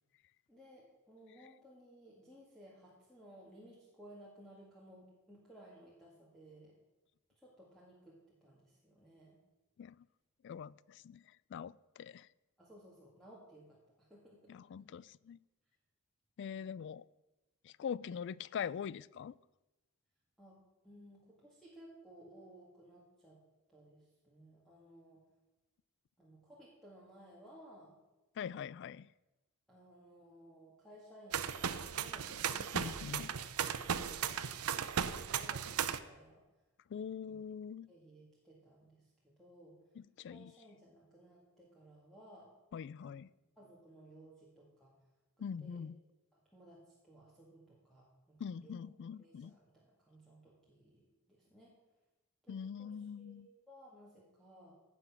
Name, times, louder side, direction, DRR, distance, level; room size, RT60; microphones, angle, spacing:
voice 1, 0.5-6.7 7.4-9.4 12.6-14.6 16.5-16.7 20.4-20.6 20.8-23.4 23.7-25.2 26.2-28.0 29.7-34.7 34.9-36.4 37.3-37.4 37.9-39.8 40.3-42.5 43.0-43.2 43.6-45.0 45.6-45.8 46.3-48.8 49.2-51.0 51.3-51.8 52.4-54.7, right 1 dB, ahead, 1.9 m, -58 dB
voice 2, 10.4-12.3 14.5-15.4 16.4-17.1 17.6-19.4 28.4-29.1 32.7-33.3 36.9-37.9 40.0-40.5 42.7-43.3 45.4-46.0 48.4-49.6 52.5-53.5, left 7 dB, 55° left, 0.3 m, -43 dB
sound 1, 31.3-36.0, right 8 dB, 85° right, 0.6 m, -36 dB
16.5 x 6.1 x 5.9 m
head